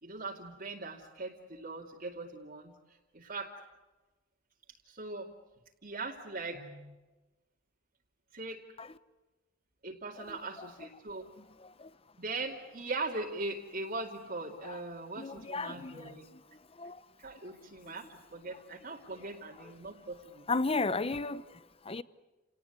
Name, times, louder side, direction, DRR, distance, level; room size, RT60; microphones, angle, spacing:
voice 1, 0.0-3.5 4.9-5.3 5.8-6.9 8.3-8.6 9.8-11.3 12.2-16.3 17.2-20.4, right 3 dB, 45° right, 2.5 m, -40 dB
voice 2, 11.4-11.9 14.6-14.8 15.2-16.4 16.8-17.0 19.6-19.7 20.5-22.0, left 3 dB, 30° left, 0.8 m, -35 dB
29.5 x 19.0 x 8.2 m
head